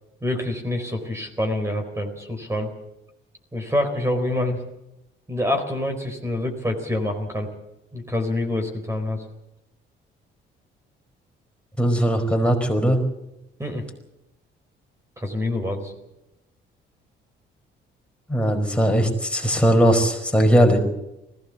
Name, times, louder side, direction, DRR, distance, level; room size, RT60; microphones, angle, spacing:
voice 1, 0.2-2.7 3.5-4.6 5.3-7.5 7.9-9.2 13.6-13.8 15.2-15.9, left 1 dB, 15° right, 4 dB, 4.4 m, -26 dB
voice 2, 11.8-13.0 18.3-20.8, equal, 5° left, 2 dB, 4.9 m, -19 dB
20.0 x 16.5 x 8.1 m, 0.91 s
cardioid pair, 90°, 20 cm